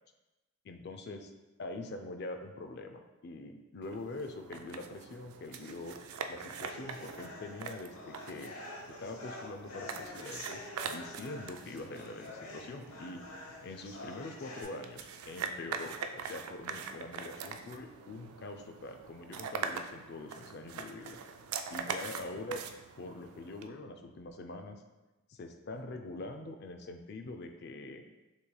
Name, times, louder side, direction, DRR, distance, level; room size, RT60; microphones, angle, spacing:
voice 1, 0.7-1.3 1.6-6.0 6.3-8.5 9.0-13.2 13.6-21.2 21.7-22.6 23.0-24.8 25.3-28.0, left 2 dB, 50° left, 6 dB, 0.4 m, -44 dB
sound 1, 3.8-23.7, right 6 dB, 80° right, 0.3 m, -43 dB
sound 2, 6.6-14.6, left 2 dB, 80° left, 0.8 m, -47 dB
6.5 x 3.1 x 2.3 m, 1.1 s
head